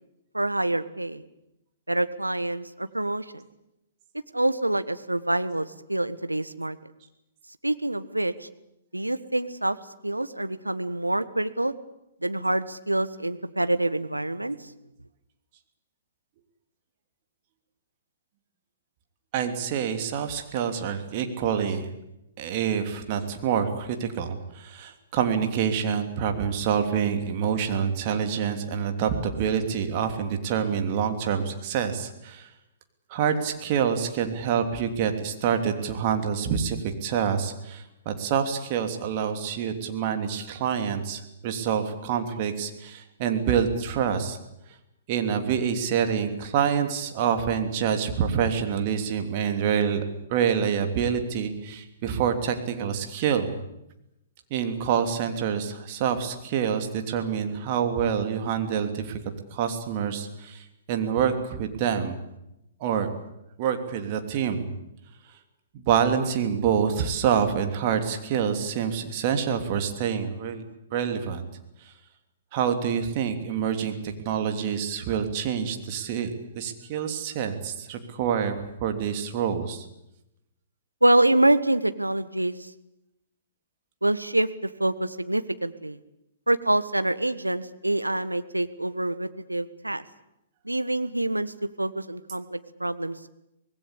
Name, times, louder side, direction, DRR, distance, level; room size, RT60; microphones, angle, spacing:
voice 1, 0.3-1.2 1.9-3.4 4.3-6.8 7.6-8.5 8.9-9.8 10.0-11.7 12.2-14.7 81.0-82.7 84.0-86.0 86.5-90.0 90.6-93.3, right 1 dB, 90° right, 12 dB, 1.4 m, -26 dB
voice 2, 19.3-21.9 22.4-32.5 33.1-44.4 45.1-50.0 50.3-53.6 54.5-59.2 59.5-62.2 62.8-63.1 63.6-64.7 65.7-70.6 70.9-71.5 72.5-76.3 76.5-79.8, right 7 dB, 40° right, 6 dB, 3.1 m, -27 dB
25.5 x 20.0 x 8.5 m, 0.86 s
figure-of-eight pair, 115°, 0 cm